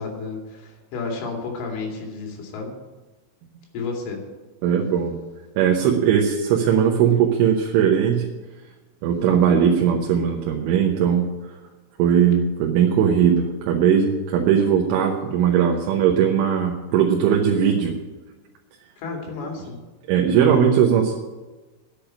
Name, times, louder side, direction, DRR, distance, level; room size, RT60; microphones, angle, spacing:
voice 1, 0.0-2.8 3.7-4.2 19.0-19.8, left 4 dB, 75° left, 0 dB, 4.9 m, -31 dB
voice 2, 4.6-5.2 5.6-8.3 9.0-11.3 12.0-17.9 20.1-21.2, right 8 dB, 80° right, 1 dB, 3.5 m, -19 dB
10.0 x 8.5 x 8.9 m, 1.2 s
omnidirectional pair, 5.6 m